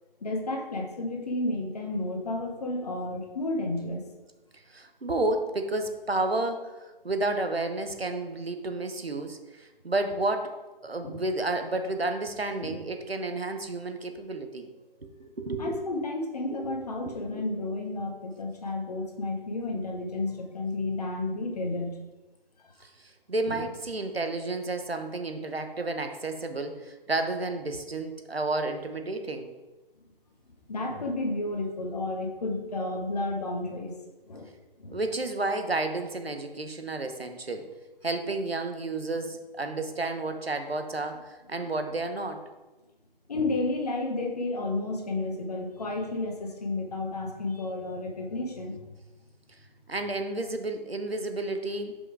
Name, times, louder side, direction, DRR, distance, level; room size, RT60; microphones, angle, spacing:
voice 1, 0.2-4.1 11.0-11.2 12.6-12.8 15.6-22.0 23.5-23.6 30.7-34.0 34.3-34.5 34.8-35.0 43.3-48.8, left 2 dB, 40° left, 2 dB, 1.0 m, -32 dB
voice 2, 4.7-10.5 10.8-14.7 15.0-15.8 16.5-16.7 17.0-17.4 22.8-29.5 34.9-37.7 38.0-42.4 49.9-52.0, right 2 dB, 90° right, 7 dB, 1.0 m, -31 dB
5.5 x 5.3 x 4.8 m, 1.2 s
figure-of-eight pair, 150°, 29 cm